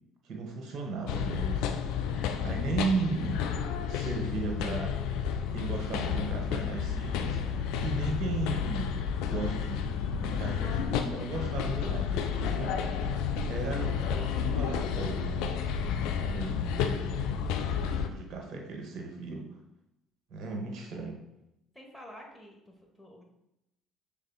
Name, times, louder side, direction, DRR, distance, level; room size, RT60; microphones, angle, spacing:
voice 1, 0.2-3.4 3.9-5.2 5.5-8.9 9.3-9.9 10.2-15.6 16.2-17.2 17.5-19.4 20.3-21.2, right 4 dB, 50° right, 1 dB, 1.0 m, -36 dB
sound 1, 1.1-18.1, left 7 dB, 65° left, 0.4 m, -31 dB
voice 2, 21.7-23.2, equal, 10° left, -1 dB, 1.3 m, -49 dB
6.4 x 3.5 x 2.3 m, 0.85 s
figure-of-eight pair, 50°, 0 cm